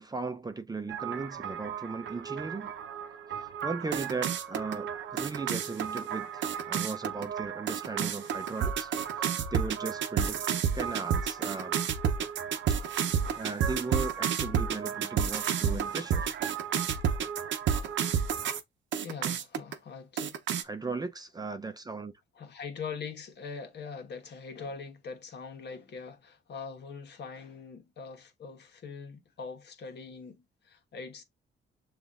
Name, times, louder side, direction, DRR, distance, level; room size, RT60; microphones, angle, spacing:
voice 1, 0.0-2.7 3.3-10.5 10.7-11.8 12.7-16.3 20.6-22.1, right 4 dB, 20° right, 0.6 m, -37 dB
sound 1, 0.9-18.6 18.9-19.7 20.2-20.6, right 8 dB, 70° right, 0.8 m, -31 dB
voice 2, 19.0-20.7 22.3-31.2, left 5 dB, 60° left, 1.3 m, -42 dB
6.9 x 2.5 x 2.4 m
cardioid pair, 90°, 20 cm